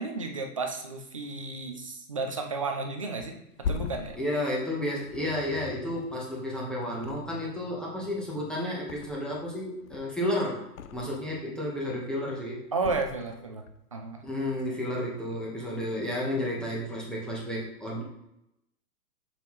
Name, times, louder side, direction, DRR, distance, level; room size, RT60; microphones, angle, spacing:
voice 1, 0.0-3.3 3.7-4.2 12.7-13.6 13.9-14.2, right 3 dB, 25° right, 4 dB, 0.3 m, -32 dB
Thump thud, 3.2-6.5 6.9-7.7 8.0-9.5 9.8-11.3 11.7-12.2 12.8-13.8 14.1-14.3, left 6 dB, 60° left, 0.7 m, -40 dB
voice 2, 4.2-10.6 10.9-12.6 14.2-18.0, left 1 dB, ahead, -5 dB, 1.1 m, -32 dB
6.7 x 5.6 x 3.1 m, 0.83 s
hypercardioid pair, 150°, 47 cm